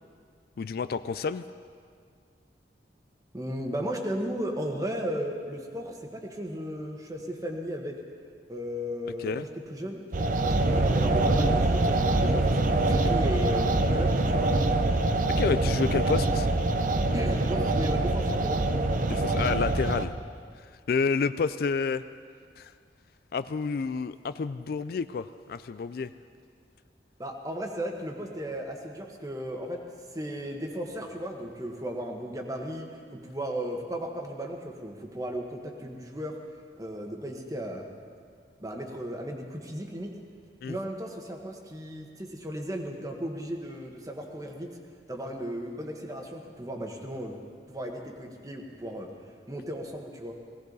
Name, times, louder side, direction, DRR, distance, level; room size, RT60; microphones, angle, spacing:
voice 1, 0.6-1.4 9.2-9.5 15.4-16.5 19.1-20.1 20.9-22.0 22.6-22.7 23.3-26.1 40.6-40.8, left 5 dB, 55° left, 13 dB, 0.3 m, -29 dB
voice 2, 3.3-8.0 8.5-10.0 10.4-14.5 15.6-15.8 17.1-18.6 27.2-29.8 30.1-36.4 36.7-37.9 38.6-40.2 40.7-44.8 45.1-47.4 47.7-49.1 49.5-50.3, equal, 20° right, 2 dB, 1.4 m, -35 dB
sound 1, 10.1-20.0, right 2 dB, 50° right, 0.7 m, -24 dB
18.5 x 17.0 x 4.0 m, 2.1 s
head